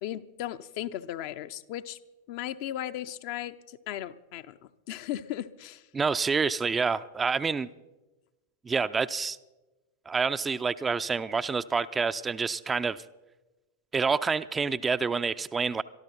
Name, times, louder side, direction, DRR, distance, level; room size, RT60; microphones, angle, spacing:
voice 1, 0.0-2.0 2.3-4.6 4.9-5.9, left 12 dB, 45° left, 11 dB, 0.6 m, -36 dB
voice 2, 5.9-7.7 8.6-9.4 10.1-13.0 13.9-15.8, right 5 dB, 15° right, 12 dB, 0.4 m, -28 dB
23.0 x 13.0 x 4.0 m, 1.1 s
figure-of-eight pair, 90°, 0 cm